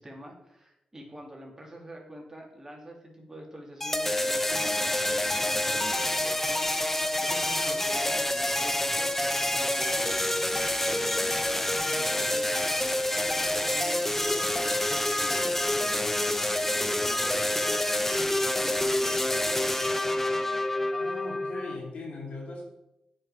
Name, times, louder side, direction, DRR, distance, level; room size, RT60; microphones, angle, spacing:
voice 1, 0.0-6.6 7.2-10.4 10.8-12.6 13.1-19.7, right 1 dB, 20° right, -1 dB, 2.6 m, -45 dB
sound 1, 3.8-21.8, left 1 dB, 10° left, 0.7 m, -27 dB
voice 2, 20.9-22.6, left 2 dB, 70° left, -1 dB, 2.7 m, -39 dB
8.7 x 5.4 x 4.8 m, 0.90 s
cardioid pair, 65°, 2 cm